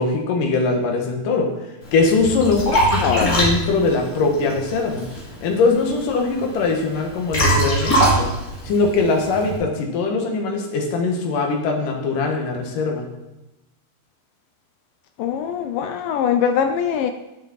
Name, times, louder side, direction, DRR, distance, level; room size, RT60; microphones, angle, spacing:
voice 1, 0.0-1.5 1.9-2.6 2.9-5.0 5.4-8.3 8.6-13.1, left 3 dB, 65° left, 2 dB, 3.0 m, -21 dB
Liquid, 1.8-9.6, right 1 dB, 25° left, 2.6 m, -23 dB
voice 2, 2.5-3.4 15.2-17.1, left 8 dB, 80° left, 8 dB, 2.0 m, -22 dB
12.5 x 7.4 x 4.2 m, 0.96 s
omnidirectional pair, 4.4 m